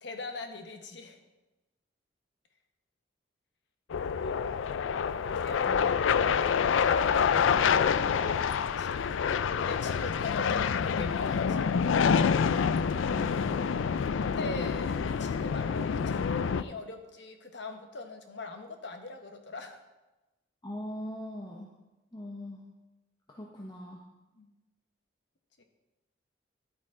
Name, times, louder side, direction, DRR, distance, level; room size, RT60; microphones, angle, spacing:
voice 1, 0.0-1.2 5.2-5.6 8.2-12.2 14.2-19.8 24.3-24.5 25.6-25.7, left 3 dB, 65° left, 5 dB, 1.1 m, -42 dB
sound 1, 3.9-16.6, left 6 dB, 85° left, 0.4 m, -27 dB
voice 2, 7.6-7.9 13.0-13.7 20.6-21.7 22.1-22.6 23.3-24.0, equal, 20° left, -1 dB, 0.8 m, -41 dB
11.5 x 8.7 x 3.7 m, 1.1 s
head